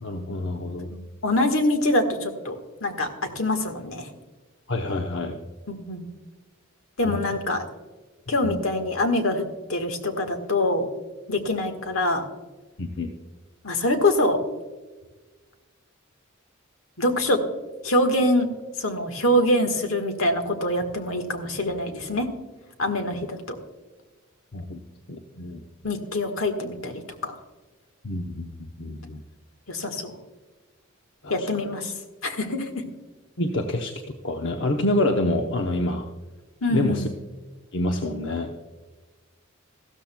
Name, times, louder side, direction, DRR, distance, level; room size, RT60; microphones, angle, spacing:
voice 1, 0.0-0.9 4.7-5.4 7.0-7.2 8.4-8.6 12.8-13.1 24.5-24.8 25.1-25.6 28.0-29.2 31.2-31.5 33.4-33.9 34.2-36.1 36.7-37.1 37.7-38.5, left 1 dB, 60° left, 3 dB, 0.8 m, -27 dB
voice 2, 0.9-4.1 5.7-6.1 7.0-7.7 8.3-10.9 11.3-12.3 13.6-14.4 17.0-17.4 17.8-18.5 18.8-22.3 22.8-23.6 25.8-27.3 29.7-30.1 31.3-31.9 32.2-32.8 36.6-37.1, left 1 dB, 75° left, 7 dB, 1.5 m, -24 dB
15.0 x 13.0 x 2.2 m, 1.3 s
head